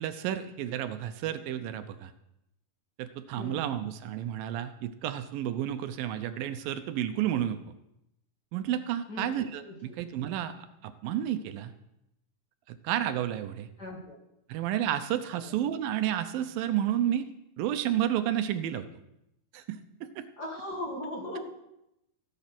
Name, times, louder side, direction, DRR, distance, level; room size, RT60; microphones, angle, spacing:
voice 1, 0.0-2.1 3.0-7.6 8.5-11.7 12.7-13.7 14.5-17.3 17.6-18.9 19.5-20.2, right 11 dB, 80° right, 10 dB, 2.5 m, -31 dB
voice 2, 9.1-9.7 13.8-14.2 15.3-15.5 20.4-21.5, left 1 dB, 35° left, -1 dB, 2.1 m, -38 dB
16.5 x 8.5 x 6.0 m, 0.85 s
omnidirectional pair, 4.1 m